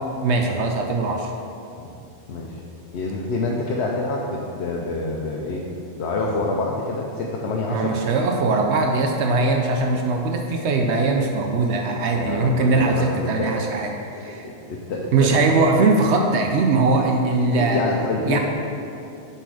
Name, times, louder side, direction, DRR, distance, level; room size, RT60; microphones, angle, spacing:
voice 1, 0.2-1.3 7.7-13.9 14.2-14.5 15.1-17.8 18.3-18.4, right 3 dB, 75° right, 2 dB, 0.9 m, -21 dB
voice 2, 2.3-2.6 2.9-5.6 6.0-8.0 12.1-13.5 14.7-15.3 17.5-18.4, left 3 dB, 75° left, -2 dB, 0.9 m, -26 dB
7.7 x 4.2 x 4.7 m, 2.8 s
omnidirectional pair, 1.2 m